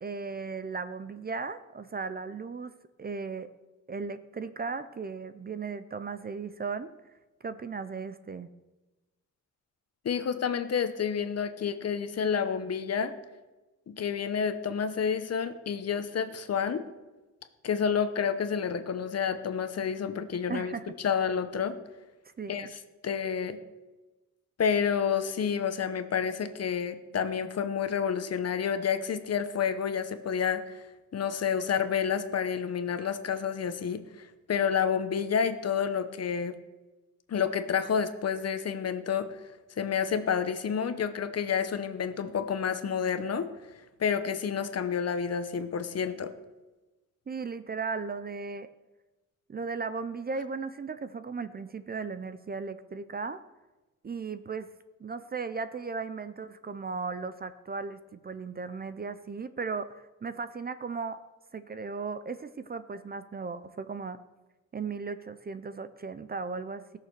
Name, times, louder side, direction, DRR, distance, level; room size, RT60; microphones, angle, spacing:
voice 1, 0.0-3.5 3.9-6.9 7.4-8.5 20.5-21.0 22.4-22.7 47.3-48.7 49.5-53.4 54.0-54.7 55.0-61.2 61.5-64.2 64.7-67.0, right 4 dB, 30° right, 13 dB, 0.5 m, -36 dB
voice 2, 10.0-13.1 13.9-16.8 17.6-20.7 21.0-21.8 22.5-22.7 23.0-23.6 24.6-30.8 31.1-36.5 37.3-39.3 39.8-43.5 44.0-46.3, left 7 dB, 50° left, 10 dB, 0.9 m, -29 dB
17.5 x 6.7 x 6.6 m, 1.1 s
wide cardioid pair, 165°, 31 cm